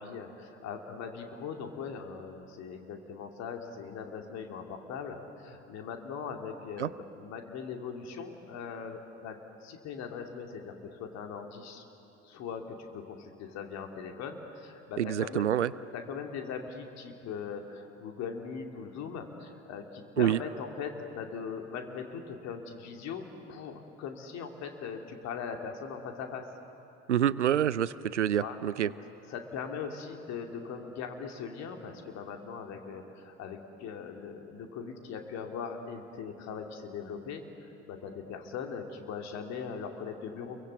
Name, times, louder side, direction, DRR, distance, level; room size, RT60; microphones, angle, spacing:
voice 1, 0.0-11.8 12.2-15.5 15.9-26.5 28.4-28.6 28.8-28.9 29.3-40.6, left 6 dB, 50° left, 3 dB, 2.7 m, -40 dB
voice 2, 15.0-15.7 20.2-20.4 27.1-28.9, right 10 dB, 85° right, 18 dB, 0.6 m, -27 dB
28.5 x 23.0 x 8.2 m, 2.8 s
figure-of-eight pair, 60°, 34 cm